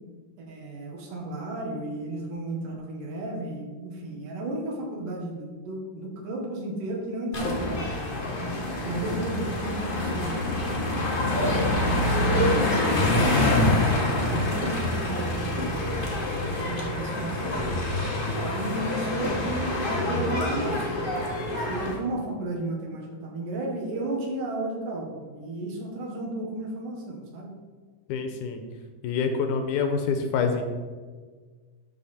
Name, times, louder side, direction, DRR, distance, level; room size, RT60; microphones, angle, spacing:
voice 1, 0.4-8.0 8.9-10.4 10.7-13.6 14.2-17.6 18.5-21.1 21.7-27.5, right 2 dB, 75° right, 0 dB, 3.1 m, -33 dB
sound 1, 7.3-21.9, left 1 dB, 50° left, 0.6 m, -26 dB
voice 2, 28.1-28.6 29.0-30.6, left 5 dB, 75° left, 6 dB, 2.1 m, -26 dB
12.0 x 5.4 x 4.3 m, 1.5 s
omnidirectional pair, 3.8 m